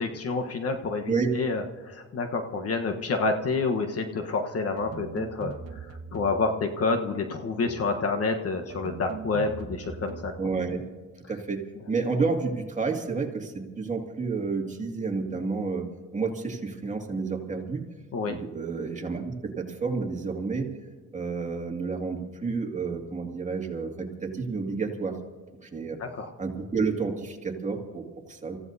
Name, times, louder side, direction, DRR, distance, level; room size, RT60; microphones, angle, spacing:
voice 1, 0.0-10.3 18.1-18.4 26.0-26.3, left 3 dB, 50° left, 5 dB, 1.3 m, -28 dB
sound 1, 4.8-6.6 7.6-8.0 8.7-10.5, right 5 dB, 50° right, 1.4 m, -41 dB
voice 2, 10.4-10.8 11.3-17.8 18.3-20.7 21.1-25.2 25.6-26.0 26.4-28.6, right 4 dB, 25° right, 2 dB, 2.3 m, -30 dB
28.0 x 15.0 x 2.8 m, 1.4 s
cardioid pair, 90°, 30 cm